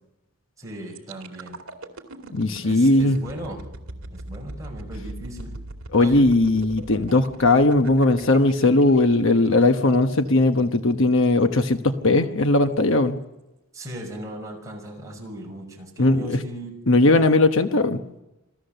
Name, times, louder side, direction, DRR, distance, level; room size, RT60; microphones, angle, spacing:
voice 1, 0.6-1.6 2.6-3.6 4.1-5.6 6.0-6.3 13.7-16.7, right 1 dB, 15° right, -1 dB, 5.9 m, -37 dB
sound 1, 0.9-10.8 11.2-11.4, right 2 dB, 60° right, 2.3 m, -40 dB
voice 2, 2.3-3.2 5.9-13.2 16.0-16.4 16.9-18.0, left 2 dB, 60° left, 7 dB, 1.1 m, -18 dB
26.5 x 16.5 x 6.8 m, 0.97 s
head